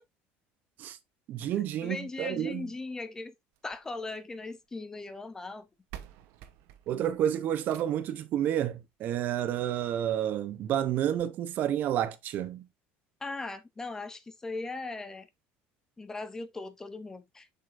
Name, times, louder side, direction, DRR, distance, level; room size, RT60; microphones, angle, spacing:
voice 1, 1.3-2.7 6.9-12.6, right 10 dB, 45° right, 0.7 m, -30 dB
voice 2, 1.8-3.3 3.6-5.7 13.2-15.3 16.0-17.5, left 3 dB, 10° left, 0.6 m, -38 dB
sound 1, 3.5-4.7 5.5-5.6 5.9-8.2 9.5-9.6 10.1-10.2 10.5-10.6 11.1-11.3, right 11 dB, 70° right, 0.9 m, -50 dB
7.0 x 5.6 x 2.6 m
cardioid pair, 160°, 4 cm